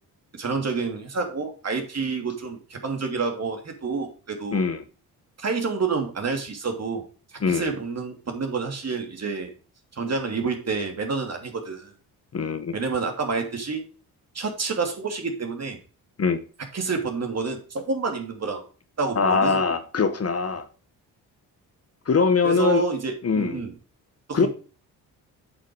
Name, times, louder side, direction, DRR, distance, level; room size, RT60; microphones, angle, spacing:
voice 1, 0.3-4.6 5.4-7.0 7.5-9.5 10.0-11.9 12.7-13.8 14.3-15.8 16.7-18.6 19.0-19.6 22.4-23.7 24.3-24.5, right 4 dB, 40° right, 2.8 m, -28 dB
voice 2, 4.5-4.8 7.4-7.7 12.3-12.7 16.2-16.4 19.1-20.7 22.1-22.8 23.2-23.6 24.3-24.5, left 5 dB, 40° left, 1.2 m, -22 dB
8.5 x 5.6 x 4.7 m
cardioid pair, 75°, 38 cm